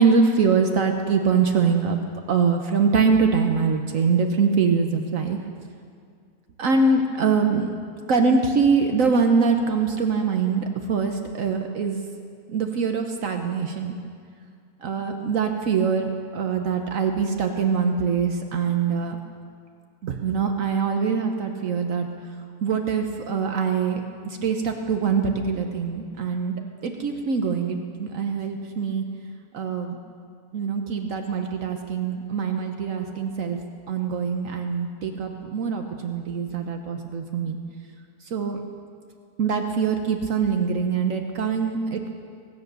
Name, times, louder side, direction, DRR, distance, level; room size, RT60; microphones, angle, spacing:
voice 1, 0.0-2.0 2.3-5.4 6.6-7.7 8.1-12.0 12.5-13.9 14.8-19.2 20.0-22.1 22.6-29.0 29.5-30.0 30.5-33.6 33.9-37.6 38.3-38.6 39.4-42.1, right 5 dB, 65° right, 4 dB, 1.2 m, -23 dB
23.0 x 8.5 x 6.7 m, 2.2 s
omnidirectional pair, 1.6 m